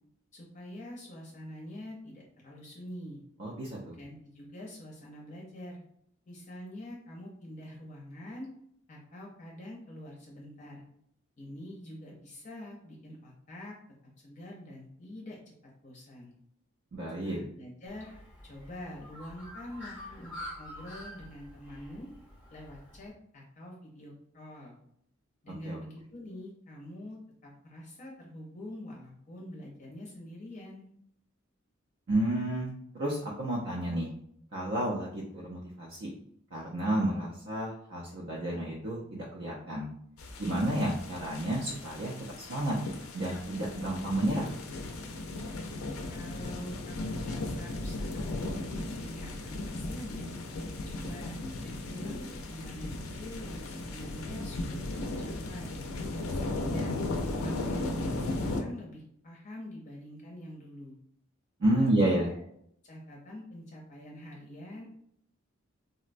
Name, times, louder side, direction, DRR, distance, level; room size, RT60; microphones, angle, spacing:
voice 1, 0.3-3.2 3.9-5.8 6.3-8.5 8.9-10.8 11.4-13.7 14.2-15.4 15.8-16.3 17.1-18.1 18.4-22.1 22.5-24.8 25.4-27.2 27.4-30.9 46.1-50.3 50.8-55.8 56.2-57.0 57.4-61.0 61.6-61.9 62.2-62.4 62.8-64.9, left 1 dB, 35° left, -2 dB, 0.5 m, -45 dB
voice 2, 3.4-4.0 16.9-17.4 25.6-25.8 32.1-34.1 34.5-36.1 36.5-39.9 40.4-42.8 43.1-44.5 61.6-62.3, right 1 dB, 55° right, -4 dB, 0.5 m, -31 dB
Bird, 17.9-23.1, left 1 dB, 5° right, 0.7 m, -47 dB
sound 1, 40.2-58.6, left 2 dB, 90° left, 0.4 m, -36 dB
3.8 x 2.1 x 2.5 m, 0.69 s
head